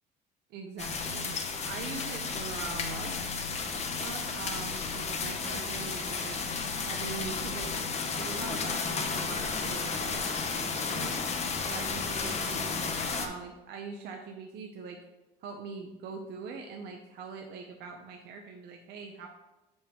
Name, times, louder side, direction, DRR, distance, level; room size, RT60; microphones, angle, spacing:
voice 1, 0.5-1.3 1.6-3.1 4.0-6.4 6.9-7.7 8.2-11.2 11.7-15.0 15.4-19.3, right 5 dB, 75° right, 2 dB, 0.7 m, -42 dB
sound 1, 0.8-13.3, left 4 dB, 40° left, 0.9 m, -33 dB
7.1 x 5.3 x 3.6 m, 1.0 s
cardioid pair, 110°, 17 cm